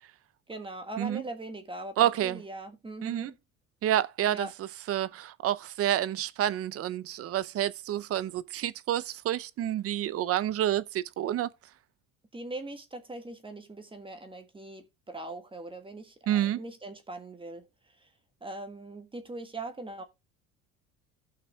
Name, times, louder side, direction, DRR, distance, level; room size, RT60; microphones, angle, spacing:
voice 1, 0.5-3.3 4.3-4.5 12.3-17.7 18.0-18.1 18.4-20.0, right 2 dB, 15° right, 1.6 m, -41 dB
voice 2, 2.0-2.4 3.0-3.3 3.8-11.5 16.3-16.6, right 12 dB, 45° right, 0.6 m, -29 dB
17.0 x 5.8 x 2.3 m
supercardioid pair, 90°, 32 cm